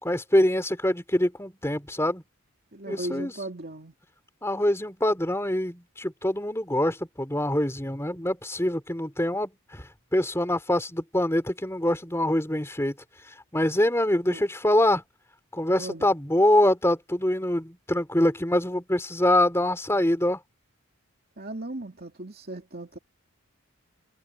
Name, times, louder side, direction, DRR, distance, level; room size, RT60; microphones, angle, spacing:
voice 1, 0.0-2.2 2.9-3.3 4.4-9.8 10.1-12.9 13.5-15.0 15.5-20.4, left 1 dB, 10° left, 3.4 m, -24 dB
voice 2, 2.7-3.9 14.3-14.4 15.7-16.1 21.4-23.0, right 2 dB, 45° right, 2.7 m, -37 dB
head